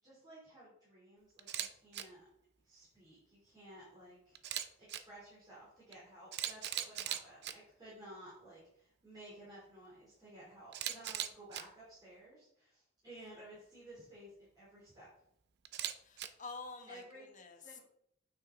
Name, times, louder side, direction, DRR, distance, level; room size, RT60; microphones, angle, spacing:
voice 1, 0.0-2.3 2.6-4.4 4.8-15.1 16.9-17.3 17.6-17.8, right 1 dB, 20° right, -9 dB, 3.8 m, -55 dB
Camera, 1.4-1.7 1.9-2.0 4.3-5.0 5.9-6.0 6.3-7.5 10.7-11.6 15.6-16.3, right 10 dB, 55° right, 0.7 m, -38 dB
voice 2, 16.0-17.8, left 4 dB, 40° left, 5 dB, 1.2 m, -49 dB
9.2 x 5.8 x 4.1 m, 0.72 s
head